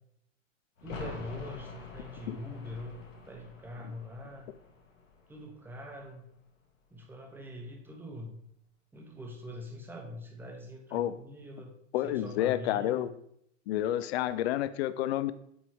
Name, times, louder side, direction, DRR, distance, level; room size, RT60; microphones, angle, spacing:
sound 1, 0.8-6.3 6.6-6.7, left 4 dB, 75° left, 1.3 m, -46 dB
voice 1, 0.8-4.5 5.3-6.3 6.9-8.4 8.9-11.7 12.0-13.1, left 1 dB, 5° right, 2 dB, 0.9 m, -43 dB
voice 2, 11.9-13.1 13.7-15.3, left 13 dB, 55° left, 14 dB, 0.5 m, -29 dB
7.8 x 4.0 x 3.1 m, 0.72 s
hypercardioid pair, 100°, 39 cm